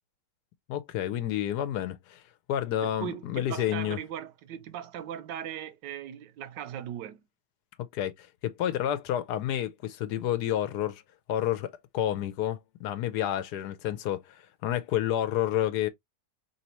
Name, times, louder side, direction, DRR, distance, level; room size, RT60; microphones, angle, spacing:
voice 1, 0.7-2.2 2.5-4.0 7.8-11.0 11.3-15.9, left 11 dB, 70° left, 1.1 m, -30 dB
voice 2, 2.8-7.2, right 10 dB, 80° right, 1.3 m, -38 dB
4.2 x 3.3 x 2.9 m
omnidirectional pair, 1.9 m